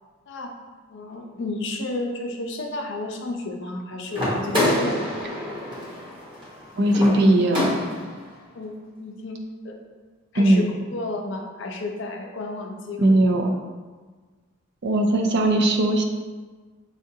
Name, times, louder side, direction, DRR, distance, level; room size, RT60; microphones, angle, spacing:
voice 1, 0.9-5.1 8.5-9.4 9.6-9.8 10.3-13.2, left 2 dB, 55° left, 2 dB, 0.5 m, -32 dB
sound 1, 4.1-8.2, left 1 dB, 20° right, 1.1 m, -27 dB
voice 2, 6.8-7.9 10.3-10.6 13.0-13.5 14.8-16.0, right 1 dB, 50° right, 3 dB, 0.4 m, -19 dB
6.3 x 2.5 x 2.7 m, 1.4 s
head